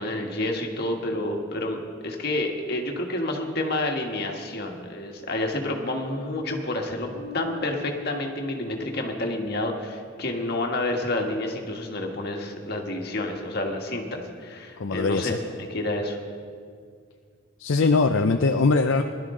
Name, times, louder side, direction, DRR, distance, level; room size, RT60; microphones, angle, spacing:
voice 1, 0.0-7.1 7.3-16.2, left 1 dB, 50° left, 2 dB, 1.6 m, -29 dB
Bass guitar, 7.1-9.8, left 2 dB, 80° right, 4.4 m, -43 dB
voice 2, 14.8-15.4 17.6-19.0, left 3 dB, 65° left, 6 dB, 0.5 m, -21 dB
20.5 x 12.0 x 3.8 m, 2.1 s
head